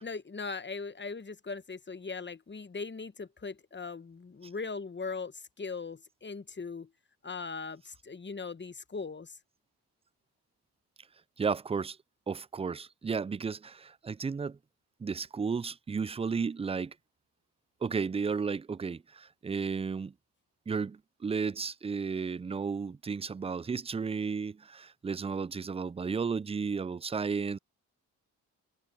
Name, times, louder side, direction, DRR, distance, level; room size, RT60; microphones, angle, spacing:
voice 1, 0.0-6.9 7.2-9.3, left 4 dB, 25° left, 1.1 m, -39 dB
voice 2, 11.4-12.0 12.3-14.6 15.0-16.9 17.8-20.1 20.7-27.6, right 5 dB, 15° right, 0.4 m, -33 dB
supercardioid pair, 45°, 43 cm